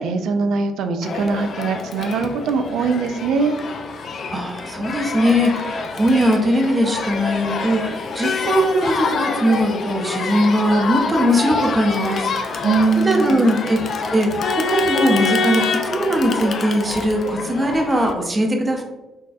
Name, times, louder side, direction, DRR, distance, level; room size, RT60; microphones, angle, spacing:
voice 1, 0.0-3.6 12.6-13.5, right 4 dB, 80° right, 7 dB, 0.3 m, -21 dB
Crowd, 1.0-18.1, left 4 dB, 55° left, 0.3 m, -26 dB
voice 2, 4.3-12.7 13.0-18.8, equal, 25° right, 2 dB, 0.5 m, -20 dB
4.0 x 2.2 x 2.3 m, 1.1 s
cardioid pair, 90°, 0 cm